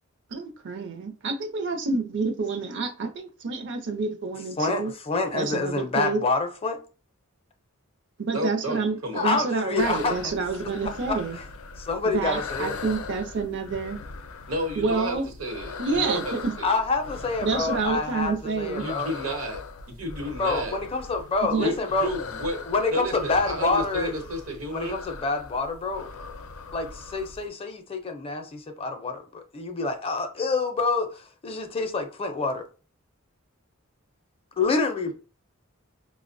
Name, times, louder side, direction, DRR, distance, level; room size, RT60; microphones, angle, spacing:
voice 1, 0.3-4.9 5.3-6.2 8.2-11.4 12.1-14.0 14.8-15.2 15.8-16.5 17.4-18.8 21.4-21.7, right 4 dB, 60° right, 0.5 m, -28 dB
voice 2, 4.6-6.8 9.1-10.3 10.8-11.4 11.8-12.8 16.6-19.1 20.4-22.1 22.7-24.1 24.7-26.1 26.7-32.7 34.6-35.1, left 3 dB, 25° left, 0.4 m, -27 dB
voice 3, 8.3-9.5 14.5-16.8 18.8-20.8 21.6-22.6 22.9-25.0, equal, 80° right, 0.9 m, -32 dB
sound 1, 9.8-27.5, left 4 dB, 85° left, 0.4 m, -40 dB
5.0 x 2.1 x 2.5 m
head